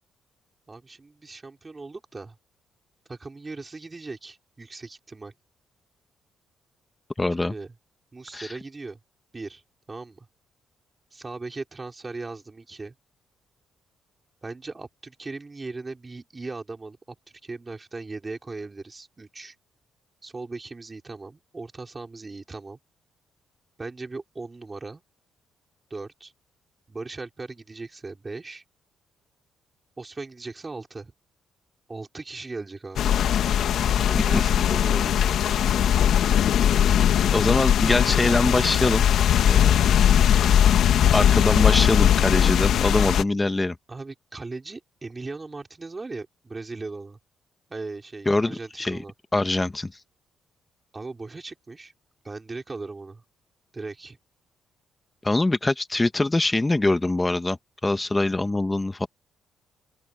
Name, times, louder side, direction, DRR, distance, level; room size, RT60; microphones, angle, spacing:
voice 1, 0.7-2.4 3.1-5.3 7.4-7.7 8.1-9.0 9.3-9.6 9.9-10.3 11.1-12.9 14.4-17.2 17.4-19.5 20.2-22.8 23.8-25.0 25.9-26.3 26.9-28.6 30.0-31.1 31.9-33.2 33.9-35.4 43.9-47.2 47.7-49.1 50.9-51.9 52.2-53.2 53.7-54.2, right 3 dB, 25° right, 4.5 m, -38 dB
voice 2, 7.2-7.5 8.3-8.5 34.1-34.4 37.3-39.0 39.5-40.0 41.1-43.8 48.2-49.0 49.3-49.9 55.2-59.1, left 2 dB, 15° left, 1.6 m, -24 dB
sound 1, 33.0-43.2, left 9 dB, 70° left, 1.3 m, -20 dB
open air
cardioid pair, 90°, 0 cm